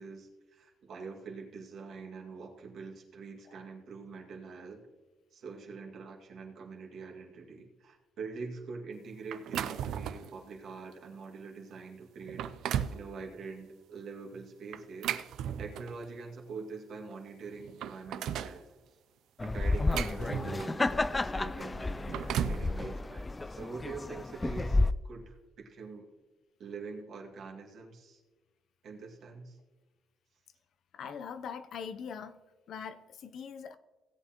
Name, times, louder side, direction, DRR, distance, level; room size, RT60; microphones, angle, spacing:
voice 1, 0.0-4.9 5.3-15.2 15.6-18.7 19.4-21.9 22.3-24.8 25.0-26.1 26.6-28.2 28.8-29.6, right 4 dB, 65° right, 0 dB, 2.1 m, -44 dB
sound 1, 9.3-10.3 10.9-11.1 11.7-11.8 12.2-13.0 14.7-16.1 17.1-17.2 17.5-18.6 19.4-20.9 21.9-22.7, right 10 dB, 80° right, 0.5 m, -35 dB
sound 2, 19.4-24.9, left 2 dB, 20° left, 0.3 m, -31 dB
voice 2, 30.9-32.4 32.7-33.8, left 7 dB, 70° left, 11 dB, 0.6 m, -42 dB
17.0 x 8.5 x 3.0 m, 1.2 s
cardioid pair, 90°, 0 cm